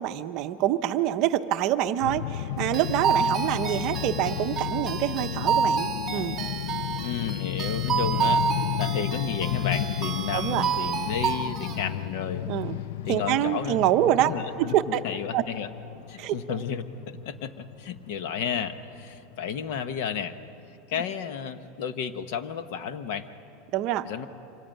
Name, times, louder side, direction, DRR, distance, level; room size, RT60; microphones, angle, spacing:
voice 1, 0.0-6.4 10.3-10.6 12.5-12.8 13.1-14.3 14.6-15.0 15.3-15.4 16.2-16.4 23.7-24.1, right 12 dB, 40° right, 9 dB, 0.7 m, -26 dB
sound 1, 2.0-20.5, left 11 dB, 75° left, 0.4 m, -33 dB
sound 2, 2.7-11.8, right 6 dB, 10° right, 1.2 m, -29 dB
voice 2, 7.0-12.5 13.1-13.8 14.3-15.7 16.1-20.4 20.9-23.3 24.0-24.3, left 7 dB, 55° left, 11 dB, 1.0 m, -32 dB
25.5 x 17.5 x 9.0 m, 2.8 s
supercardioid pair, 175°, 0 cm